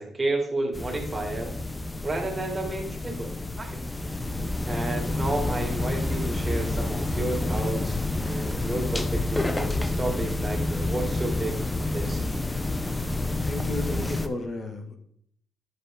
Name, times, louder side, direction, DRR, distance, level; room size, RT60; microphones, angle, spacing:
voice 1, 0.0-1.5 2.0-3.8 4.7-12.2, right 2 dB, 25° right, 0 dB, 2.7 m, -32 dB
sound 1, 0.7-14.3, left 2 dB, 15° left, 0.7 m, -29 dB
voice 2, 13.4-15.0, left 2 dB, 45° left, 4 dB, 1.8 m, -33 dB
9.7 x 7.4 x 3.7 m, 0.66 s
cardioid pair, 90°, 0 cm